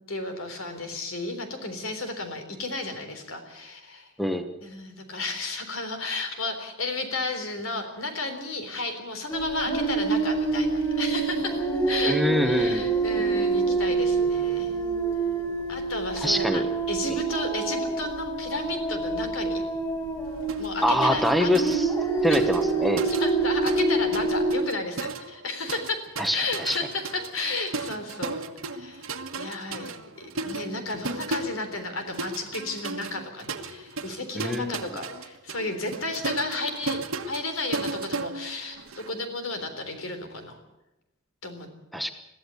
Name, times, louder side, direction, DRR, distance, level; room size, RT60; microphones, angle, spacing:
voice 1, 0.1-4.1 4.6-14.7 15.7-19.6 20.6-21.5 22.3-22.5 23.0-26.0 26.3-29.1 29.4-29.9 30.2-37.0 37.3-40.6 41.4-41.7, left 2 dB, 75° left, 7 dB, 3.7 m, -33 dB
sound 1, 9.3-24.5, right 3 dB, 20° left, 6.7 m, -26 dB
voice 2, 12.0-12.9 16.2-16.7 17.1-17.2 20.8-21.9 22.2-23.0 26.2-26.8 34.3-34.8 41.9-42.1, equal, ahead, 7 dB, 1.1 m, -25 dB
sound 2, 20.5-20.7 21.0-23.9 24.1-39.1, right 3 dB, 75° right, 1.4 m, -36 dB
22.0 x 15.0 x 8.2 m, 0.93 s
head